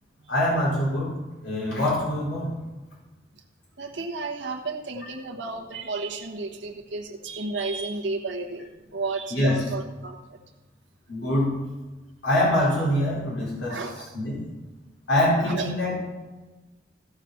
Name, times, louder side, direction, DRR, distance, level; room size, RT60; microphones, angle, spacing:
voice 1, 0.3-1.1 1.4-2.5 9.3-9.6 11.1-11.6 12.2-13.8 14.1-14.4 15.1-16.1, left 1 dB, 85° left, -7 dB, 4.6 m, -24 dB
voice 2, 3.8-8.6 8.9-10.2 13.7-14.1 15.4-15.7, right 3 dB, 80° right, 0 dB, 1.2 m, -32 dB
16.0 x 5.9 x 5.8 m, 1.2 s
head